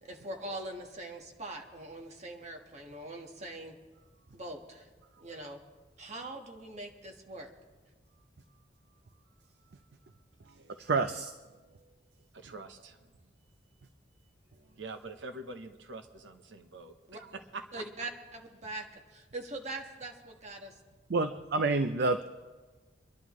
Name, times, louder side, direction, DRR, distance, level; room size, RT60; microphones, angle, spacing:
voice 1, 0.0-3.8 4.3-4.9 5.2-5.6 6.0-7.5 17.1-17.2 17.7-20.8, right 2 dB, 40° right, 3 dB, 1.5 m, -42 dB
voice 2, 10.8-11.3 21.1-22.3, right 3 dB, 60° right, 9 dB, 0.6 m, -28 dB
voice 3, 12.3-13.0 14.8-17.6, right 3 dB, 85° right, 6 dB, 1.0 m, -45 dB
26.5 x 11.5 x 3.1 m, 1.3 s
head